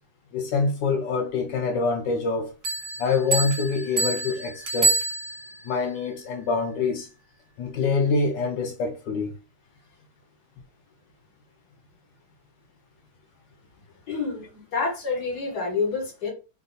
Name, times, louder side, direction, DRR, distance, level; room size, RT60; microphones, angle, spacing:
voice 1, 0.3-2.5 3.0-5.0 5.6-7.1 7.6-9.3, left 4 dB, 70° left, 1.2 m, -25 dB
sound 1, 2.6-5.7, right 3 dB, 55° right, 0.7 m, -27 dB
voice 2, 14.1-16.3, left 4 dB, 55° left, 1.9 m, -28 dB
3.8 x 2.6 x 4.0 m
omnidirectional pair, 2.3 m